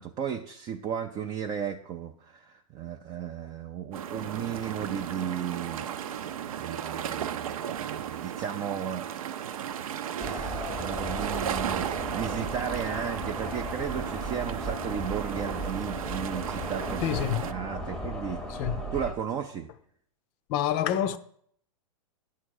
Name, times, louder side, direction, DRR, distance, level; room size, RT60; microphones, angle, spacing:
voice 1, 0.0-5.9 6.6-9.5 10.2-17.0 17.4-19.7, right 8 dB, 20° right, 0.4 m, -35 dB
sound 1, 3.9-17.5, right 9 dB, 75° right, 0.6 m, -35 dB
sound 2, 10.2-19.1, equal, 5° left, 0.8 m, -36 dB
voice 2, 17.0-17.4 18.6-18.8 20.5-21.2, left 10 dB, 40° left, 0.5 m, -27 dB
10.5 x 3.7 x 6.3 m
hypercardioid pair, 135°, 18 cm